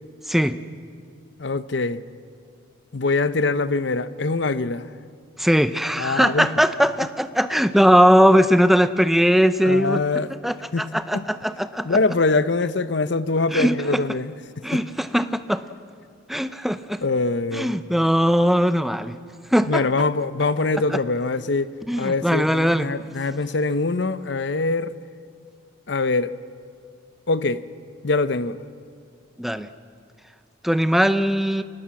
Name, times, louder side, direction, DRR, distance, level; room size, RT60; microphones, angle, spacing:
voice 1, 0.3-0.6 5.4-10.0 10.4-12.0 13.5-13.8 14.6-15.6 16.3-17.0 17.5-19.2 19.5-19.8 21.9-22.9 29.4-29.7 30.6-31.6, equal, ahead, 0.6 m, -19 dB
voice 2, 1.4-2.0 2.9-4.9 6.0-6.5 9.6-10.3 10.7-10.9 11.1-11.3 11.8-14.3 14.7-14.8 17.0-17.8 19.7-21.7 22.0-24.9 25.9-26.4 27.3-27.6 28.0-28.6, left 3 dB, 60° left, 0.7 m, -23 dB
24.5 x 19.5 x 7.6 m
head